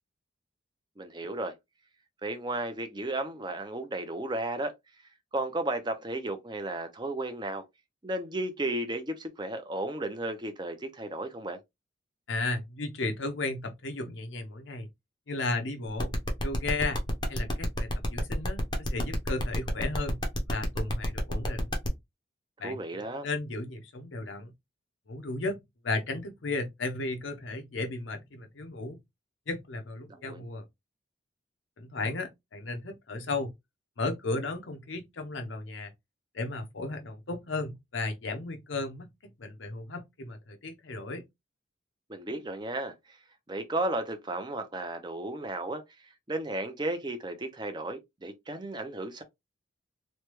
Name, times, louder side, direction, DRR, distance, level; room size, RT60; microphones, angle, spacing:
voice 1, 1.0-1.5 2.2-4.8 5.3-7.6 8.0-11.6 22.6-23.3 30.1-30.4 42.1-43.2 43.5-49.2, right 2 dB, 20° right, 0.5 m, -34 dB
voice 2, 12.3-14.9 15.3-16.1 16.4-17.0 17.3-20.2 20.5-21.7 22.6-22.8 23.1-24.5 25.1-29.0 29.5-30.6 31.8-33.5 34.0-35.9 36.3-39.1 39.4-41.2, left 2 dB, 75° left, 0.7 m, -34 dB
sound 1, 16.0-21.9, left 1 dB, 20° left, 0.6 m, -32 dB
3.2 x 2.2 x 3.0 m
head